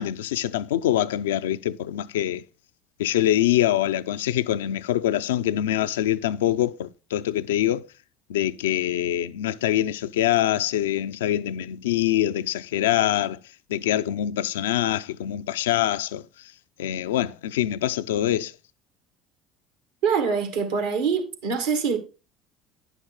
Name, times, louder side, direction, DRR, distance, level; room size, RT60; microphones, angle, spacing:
voice 1, 0.0-2.4 3.0-7.9 8.3-13.4 13.7-16.2 16.8-18.5, left 12 dB, 75° left, 0.4 m, -24 dB
voice 2, 20.0-22.0, right 6 dB, 75° right, 1.8 m, -24 dB
9.9 x 5.9 x 4.0 m
figure-of-eight pair, 60°, 0 cm